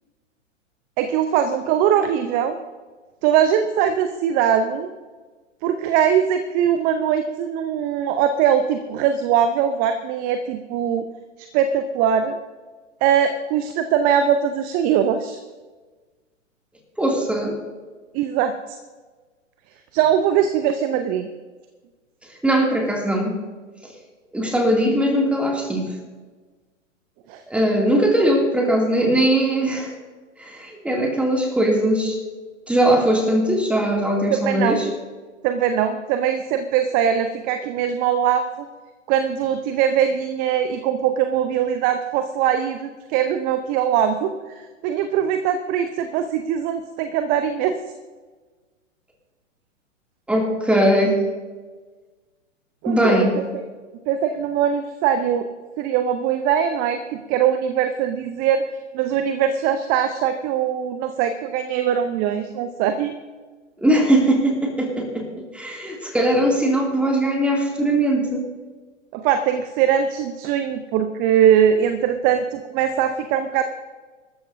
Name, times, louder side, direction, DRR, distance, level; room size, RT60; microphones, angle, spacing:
voice 1, 1.0-2.6 3.2-4.9 5.6-11.0 11.4-12.4 13.0-15.4 18.1-18.8 19.9-21.3 27.3-27.4 34.3-34.8 35.4-38.7 39.1-47.8 52.8-53.4 54.1-55.5 55.8-57.0 57.3-58.6 58.9-63.2 69.1-73.6, right 9 dB, 25° right, 9 dB, 0.7 m, -21 dB
voice 2, 17.0-17.6 22.4-23.4 23.8-23.9 24.3-25.9 27.5-29.9 30.4-32.2 32.7-34.9 50.3-51.2 52.9-53.3 63.8-68.4, right 1 dB, 5° right, 0 dB, 2.6 m, -20 dB
24.5 x 13.5 x 2.7 m, 1.3 s
figure-of-eight pair, 110°, 38 cm